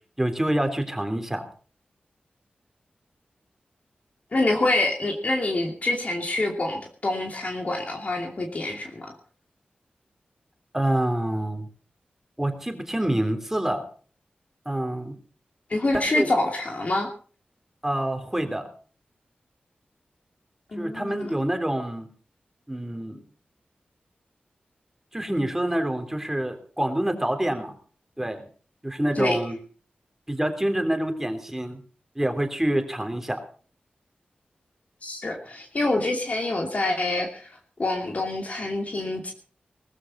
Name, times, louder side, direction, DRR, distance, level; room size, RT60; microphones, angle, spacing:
voice 1, 0.2-1.5 10.7-11.7 12.4-13.8 14.7-15.2 15.9-16.3 17.8-18.7 20.8-22.1 22.7-23.2 25.1-27.7 28.2-28.4 28.8-29.6 30.3-31.8 32.2-33.4, right 1 dB, 10° right, 6 dB, 3.4 m, -26 dB
voice 2, 4.3-9.1 15.7-17.1 20.7-21.3 29.2-29.4 35.0-39.3, left 2 dB, 50° left, 2 dB, 2.6 m, -26 dB
20.0 x 14.0 x 4.2 m, 0.41 s
wide cardioid pair, 85°, 3 cm